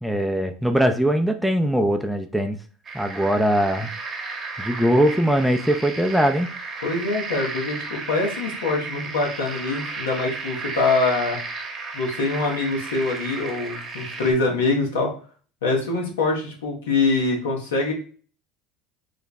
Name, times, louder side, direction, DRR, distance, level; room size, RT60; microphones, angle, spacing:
voice 1, 0.0-2.6 2.9-3.9 4.6-6.5, equal, ahead, 5 dB, 0.5 m, -21 dB
sound 1, 2.8-14.3, right 4 dB, 35° right, 0.9 m, -34 dB
voice 2, 6.8-11.4 11.9-15.1 15.6-17.9, left 3 dB, 85° left, 0 dB, 1.1 m, -24 dB
3.1 x 2.2 x 4.1 m, 0.40 s
hypercardioid pair, 80°, 0 cm